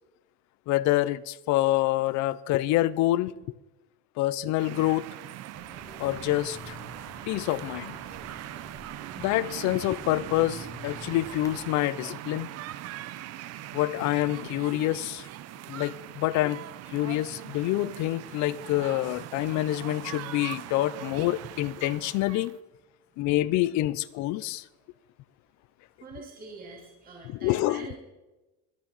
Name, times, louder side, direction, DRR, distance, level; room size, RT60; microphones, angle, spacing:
voice 1, 0.7-3.3 4.2-5.1 6.0-6.8 7.3-7.9 9.2-12.5 13.7-15.3 15.7-16.6 16.9-22.6 23.2-24.6 27.4-27.9, left 16 dB, 55° left, 0.6 m, -27 dB
sound 1, 4.6-22.6, right 13 dB, 45° right, 0.7 m, -41 dB
sound 2, 5.5-11.7, left 3 dB, 10° left, 1.2 m, -48 dB
voice 2, 26.0-28.0, right 4 dB, 25° right, 2.7 m, -44 dB
23.0 x 8.7 x 4.0 m
cardioid pair, 160°, 34 cm